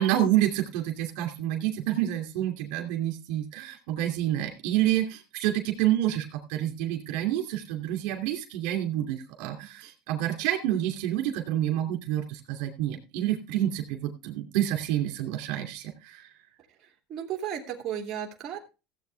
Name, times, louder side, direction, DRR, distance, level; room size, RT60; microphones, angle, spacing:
voice 1, 0.0-16.3, right 12 dB, 70° right, 3 dB, 2.8 m, -28 dB
voice 2, 16.7-18.6, right 9 dB, 40° right, 1 dB, 2.9 m, -35 dB
16.5 x 8.3 x 3.5 m, 0.30 s
supercardioid pair, 115°, 0 cm